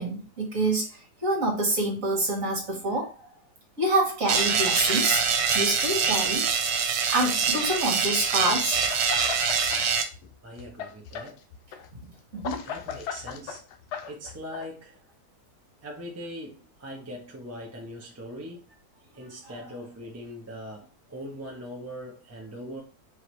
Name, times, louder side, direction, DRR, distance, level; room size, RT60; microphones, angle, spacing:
voice 1, 0.0-3.3 3.8-5.3 5.5-6.5 7.1-8.8 12.3-12.7 19.5-19.6, right 1 dB, 50° right, 1.7 m, -27 dB
sound 1, 4.3-10.0, right 6 dB, 80° right, 1.4 m, -25 dB
sound 2, 8.7-9.8 10.1-14.7, left 7 dB, 75° left, 1.1 m, -37 dB
voice 2, 10.4-11.4 12.6-13.7 14.1-15.0 15.8-18.7 19.1-22.8, equal, 15° right, 0.5 m, -41 dB
4.9 x 3.2 x 3.0 m
omnidirectional pair, 1.9 m